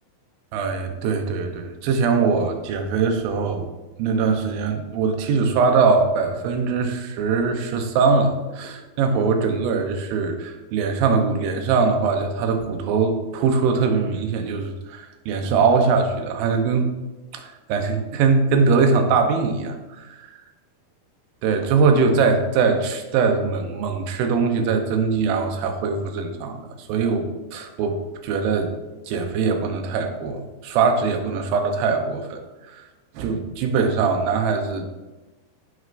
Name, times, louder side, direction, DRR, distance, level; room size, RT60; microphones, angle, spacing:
voice 1, 0.5-3.7 4.0-16.9 17.3-20.3 21.4-28.8 29.1-32.4 32.7-32.9 33.1-34.9, right 4 dB, 80° right, 4 dB, 2.7 m, -22 dB
16.0 x 6.4 x 2.6 m, 1.1 s
omnidirectional pair, 4.2 m